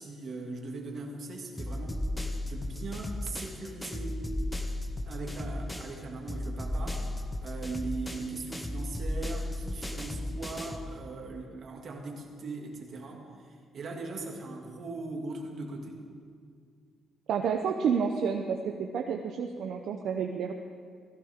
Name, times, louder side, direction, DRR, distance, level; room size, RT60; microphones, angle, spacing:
voice 1, 0.0-2.1 2.4-4.2 5.1-7.1 7.4-16.0, right 3 dB, 50° right, 0 dB, 2.3 m, -39 dB
sound 1, 1.6-6.0 6.3-10.9, left 1 dB, 10° left, 0.9 m, -35 dB
voice 2, 17.3-20.5, right 6 dB, 70° right, 4 dB, 0.7 m, -30 dB
16.0 x 15.5 x 3.7 m, 2.1 s
cardioid pair, 115°, 0 cm